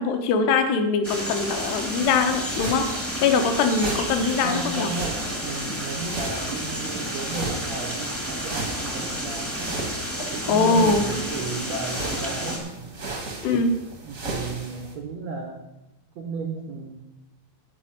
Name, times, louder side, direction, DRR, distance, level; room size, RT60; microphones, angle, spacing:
voice 1, 0.0-2.9 3.2-4.9 10.5-11.0 13.4-13.7, left 4 dB, 75° left, 7 dB, 3.1 m, -22 dB
sound 1, 1.0-12.6, equal, 10° left, 0.7 m, -31 dB
sound 2, 1.5-14.9, right 2 dB, 55° right, 0.8 m, -36 dB
voice 2, 4.4-9.8 10.3-12.9 14.0-15.6 16.1-17.0, right 4 dB, 85° right, 1 dB, 1.5 m, -34 dB
11.5 x 5.5 x 8.7 m, 0.98 s
omnidirectional pair, 5.0 m